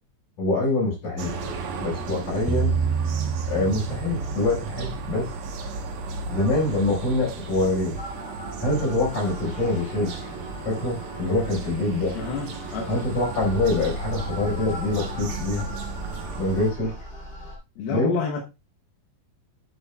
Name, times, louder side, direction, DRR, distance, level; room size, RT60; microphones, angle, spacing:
voice 1, 0.4-1.3 1.8-2.8 3.5-5.3 6.2-8.0 8.6-10.1 10.6-12.1 12.9-15.7 16.4-16.9 17.9-18.1, left 2 dB, 55° left, -4 dB, 6.2 m, -25 dB
sound 1, 1.2-16.7, right 4 dB, 90° right, 1.2 m, -35 dB
sound 2, 2.5-4.9, right 6 dB, 5° right, 2.3 m, -27 dB
sound 3, 8.0-17.6, left 1 dB, 20° left, 2.1 m, -37 dB
voice 2, 12.1-12.9 17.8-18.4, left 5 dB, 85° left, 1 dB, 2.9 m, -29 dB
9.7 x 8.3 x 2.3 m, 0.25 s
omnidirectional pair, 4.2 m